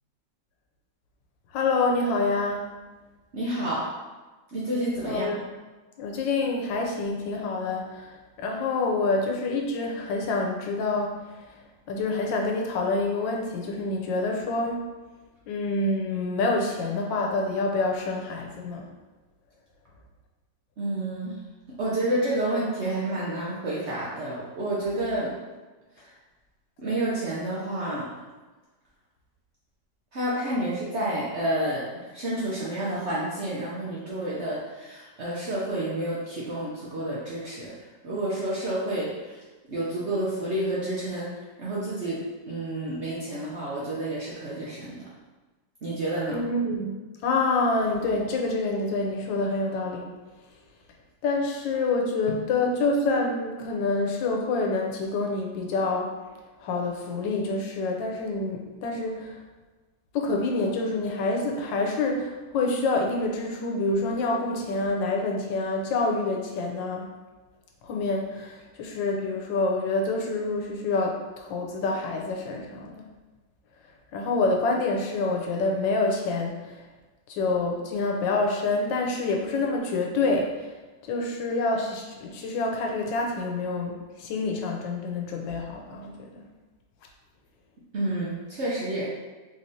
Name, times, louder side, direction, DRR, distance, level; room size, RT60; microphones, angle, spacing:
voice 1, 1.5-2.7 5.0-5.4 6.0-11.2 11.9-14.9 15.5-18.8 46.3-50.1 51.2-56.1 56.6-59.4 60.1-67.1 67.8-73.0 74.1-76.8 77.3-80.7 81.1-86.3, left 3 dB, 90° left, 1 dB, 1.3 m, -27 dB
voice 2, 3.3-3.9 4.5-5.3 20.8-21.4 21.8-25.3 26.8-28.1 30.1-37.7 38.0-39.4 39.7-41.3 41.6-45.0 45.8-46.4 87.9-89.1, right 1 dB, 60° right, -7 dB, 0.7 m, -29 dB
3.7 x 3.1 x 2.7 m, 1.2 s
omnidirectional pair, 1.9 m